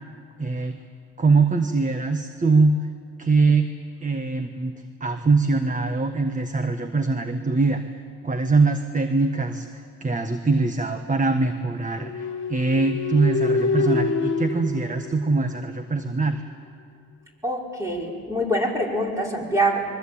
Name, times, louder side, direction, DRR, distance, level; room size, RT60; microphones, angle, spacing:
voice 1, 0.4-0.8 1.2-2.9 3.2-3.7 4.0-16.4, right 3 dB, 25° right, 7 dB, 1.4 m, -23 dB
sound 1, 12.0-15.8, left 3 dB, 40° left, 2.2 m, -26 dB
voice 2, 17.4-19.9, right 1 dB, 10° right, -2 dB, 5.7 m, -25 dB
24.0 x 22.5 x 8.7 m, 2.2 s
cardioid pair, 90°, 30 cm